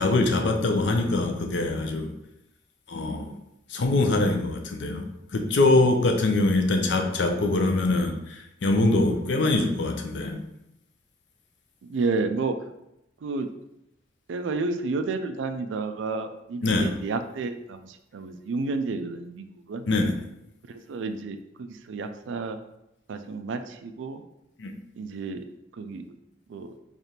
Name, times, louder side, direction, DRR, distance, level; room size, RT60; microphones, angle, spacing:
voice 1, 0.0-2.1 2.9-3.3 3.7-5.0 5.3-10.4 16.6-16.9 19.9-20.1 24.6-24.7, left 2 dB, 65° left, 4 dB, 0.5 m, -23 dB
voice 2, 11.8-12.6 13.2-13.5 14.3-19.8 20.7-22.6 23.1-24.2 25.0-25.5 25.8-26.0 26.5-26.7, right 3 dB, 75° right, 8 dB, 0.4 m, -31 dB
3.3 x 2.4 x 4.2 m, 0.85 s
head